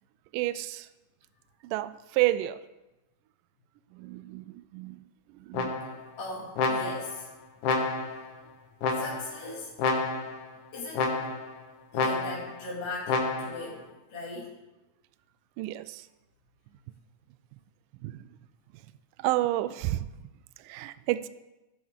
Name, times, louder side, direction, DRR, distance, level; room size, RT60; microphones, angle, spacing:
voice 1, 0.3-0.9 1.6-2.6 3.9-5.1 5.5-5.8 15.6-16.1 18.0-18.2 19.2-20.1 20.7-21.3, right 16 dB, 80° right, 14 dB, 2.1 m, -30 dB
sound 1, 5.5-6.1 6.6-7.2 7.6-8.3 8.8-9.4 9.8-10.4 10.9-11.5 11.9-12.6 13.1-13.7, left 3 dB, 70° left, 2.6 m, -29 dB
voice 2, 6.2-7.3 8.9-9.7 10.7-11.2 11.9-14.6, left 2 dB, 50° left, -5 dB, 3.0 m, -39 dB
16.0 x 10.5 x 3.7 m, 1.0 s
omnidirectional pair, 3.9 m